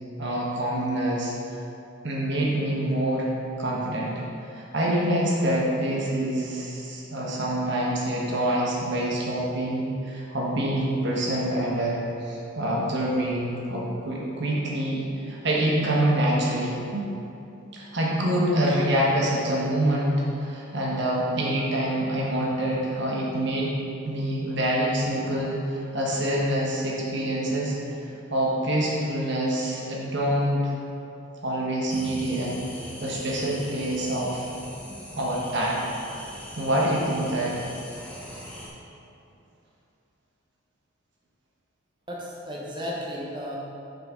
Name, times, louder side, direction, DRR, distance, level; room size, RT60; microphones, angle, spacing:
voice 1, 0.2-1.6 2.0-3.3 3.6-4.1 4.4-17.1 17.7-23.7 24.0-27.7 28.3-30.7 31.4-32.6 33.0-34.4 35.2-35.8 36.6-37.6, right 1 dB, 55° right, -4 dB, 1.3 m, -26 dB
sound 1, 31.9-38.7, left 1 dB, 5° left, 1.0 m, -41 dB
voice 2, 42.1-43.6, equal, 20° right, -4 dB, 0.9 m, -34 dB
6.5 x 5.9 x 5.1 m, 2.8 s
head